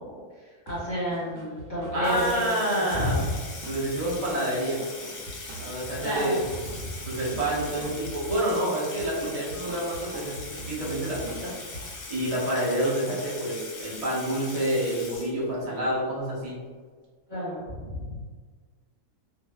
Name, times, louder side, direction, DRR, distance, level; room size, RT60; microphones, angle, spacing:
voice 1, 0.0-3.4 6.0-7.0 17.3-18.2, equal, 40° left, -9 dB, 0.8 m, -32 dB
sound 1, 0.7-12.6, right 1 dB, 70° right, 1.0 m, -44 dB
voice 2, 1.9-3.2 3.6-4.8 5.6-6.4 7.1-11.5 12.1-16.6, right 1 dB, 45° right, -7 dB, 0.5 m, -28 dB
Water tap faucet / Sink (filling or washing), 2.0-15.8, left 3 dB, 70° left, 0.9 m, -41 dB
2.5 x 2.3 x 2.2 m, 1.5 s
omnidirectional pair, 1.7 m